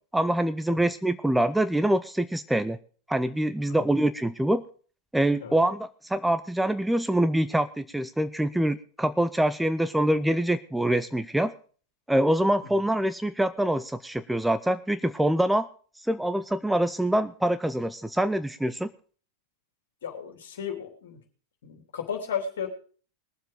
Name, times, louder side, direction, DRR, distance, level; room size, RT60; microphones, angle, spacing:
voice 1, 0.1-2.8 3.1-4.6 5.1-11.5 12.1-15.7 16.1-18.9, right 1 dB, 5° right, 12 dB, 0.6 m, -25 dB
voice 2, 20.0-21.2 21.6-22.7, left 7 dB, 60° left, 3 dB, 3.1 m, -34 dB
20.5 x 7.5 x 5.1 m, 0.42 s
figure-of-eight pair, 90°, 0 cm